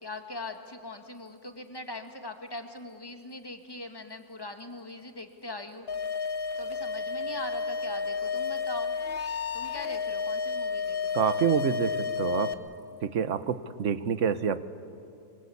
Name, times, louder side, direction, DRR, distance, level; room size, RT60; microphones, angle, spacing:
voice 1, 0.0-5.9 6.6-8.9 9.5-11.2, left 2 dB, 20° left, 5 dB, 1.7 m, -41 dB
sound 1, 5.9-12.5, left 5 dB, 50° left, 1.1 m, -31 dB
voice 2, 11.1-12.5 13.0-14.6, right 7 dB, 70° right, 13 dB, 1.3 m, -27 dB
25.5 x 24.0 x 8.4 m, 2.6 s
omnidirectional pair, 1.4 m